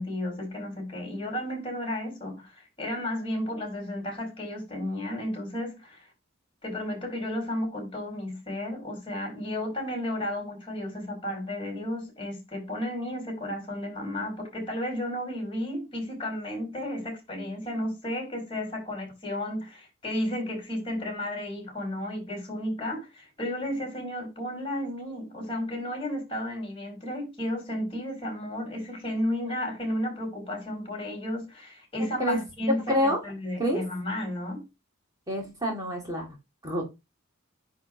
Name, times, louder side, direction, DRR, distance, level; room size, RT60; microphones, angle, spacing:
voice 1, 0.0-6.1 6.6-34.6, left 1 dB, 25° left, 4.7 m, -33 dB
voice 2, 32.9-33.2 33.6-33.8 35.3-36.3 36.6-36.8, equal, 20° right, 2.4 m, -27 dB
9.7 x 3.8 x 3.9 m
head